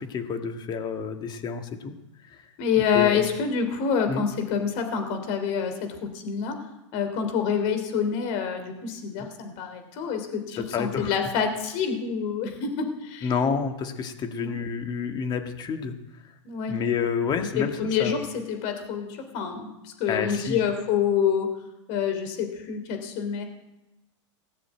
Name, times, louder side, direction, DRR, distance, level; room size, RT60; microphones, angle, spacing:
voice 1, 0.0-1.9 2.3-2.4 2.9-3.2 4.1-4.3 10.6-11.2 13.2-15.9 16.7-17.7 18.0-18.2 20.1-20.6, left 6 dB, 25° left, 6 dB, 1.7 m, -29 dB
voice 2, 2.6-6.6 6.9-13.3 14.4-14.6 16.4-16.8 17.4-21.5 21.9-23.4, left 7 dB, 45° left, 6 dB, 3.1 m, -27 dB
18.0 x 6.9 x 9.1 m, 0.98 s
hypercardioid pair, 130°, 16 cm